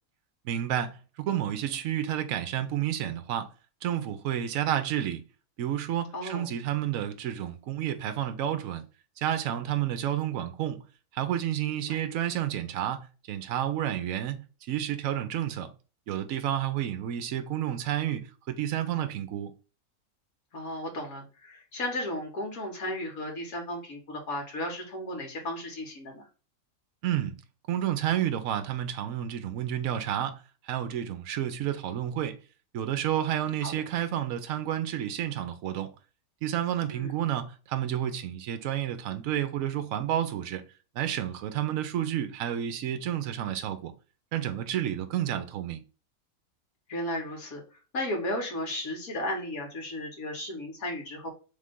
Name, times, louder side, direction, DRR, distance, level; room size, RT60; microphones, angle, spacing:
voice 1, 0.4-3.5 3.8-5.2 5.6-8.8 9.2-10.8 11.1-15.7 16.1-19.5 27.0-27.4 27.7-32.4 32.7-35.9 36.4-40.6 40.9-43.9 44.3-45.8, right 11 dB, 65° right, 1.0 m, -30 dB
voice 2, 6.1-6.5 11.7-12.0 20.5-26.2 33.6-33.7 36.9-37.2 46.9-47.6 47.9-51.3, left 1 dB, 60° left, 1.9 m, -34 dB
3.6 x 3.2 x 3.7 m
omnidirectional pair, 1.7 m